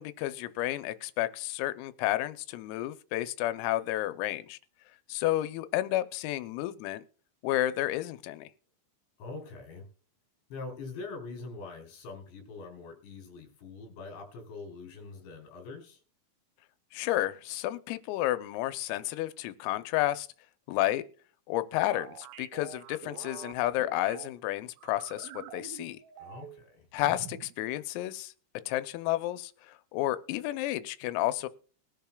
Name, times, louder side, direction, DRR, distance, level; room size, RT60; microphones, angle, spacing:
voice 1, 0.0-4.6 5.1-7.0 7.4-8.5 16.9-20.3 20.7-21.0 21.5-26.0 26.9-28.3 28.7-29.5 29.9-31.5, left 15 dB, 90° left, 3.4 m, -31 dB
voice 2, 9.2-9.9 10.5-16.0 26.2-26.9, left 3 dB, 60° left, 6.1 m, -43 dB
sound 1, 21.9-24.3 24.8-26.7 27.0-27.5, right 11 dB, 80° right, 3.5 m, -46 dB
21.5 x 10.5 x 2.3 m
omnidirectional pair, 5.9 m